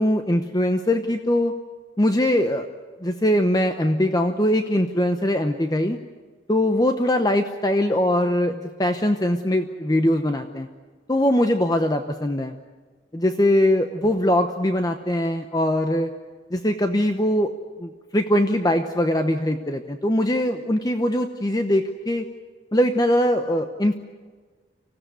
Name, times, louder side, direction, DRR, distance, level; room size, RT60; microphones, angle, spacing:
voice 1, 0.0-1.5 2.0-2.7 3.0-6.0 6.5-10.7 11.1-12.5 13.1-16.1 16.5-17.5 17.8-22.2 22.7-23.9, left 1 dB, 20° left, 7 dB, 0.8 m, -21 dB
25.5 x 16.5 x 9.3 m, 1.5 s
head